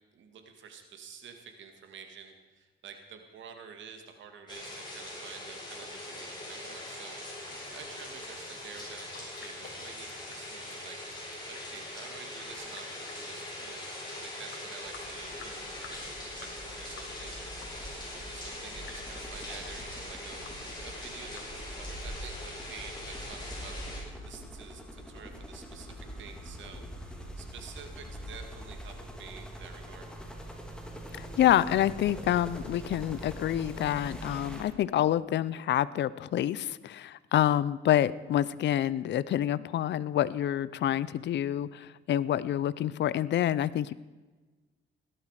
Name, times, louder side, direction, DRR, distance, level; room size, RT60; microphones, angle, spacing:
voice 1, 0.1-13.8 14.2-17.4 18.0-21.4 21.7-30.1, right 6 dB, 70° right, 5 dB, 2.1 m, -49 dB
sound 1, 4.5-24.0, left 1 dB, 20° left, 6.5 m, -42 dB
Sink (filling or washing) / Drip, 7.4-21.9, left 6 dB, 80° left, 2.7 m, -54 dB
sound 2, 14.8-34.6, equal, 5° left, 2.7 m, -44 dB
voice 2, 31.2-43.9, left 11 dB, 65° left, 18 dB, 0.6 m, -27 dB
17.5 x 12.0 x 5.0 m, 1.2 s
cardioid pair, 90°, 20 cm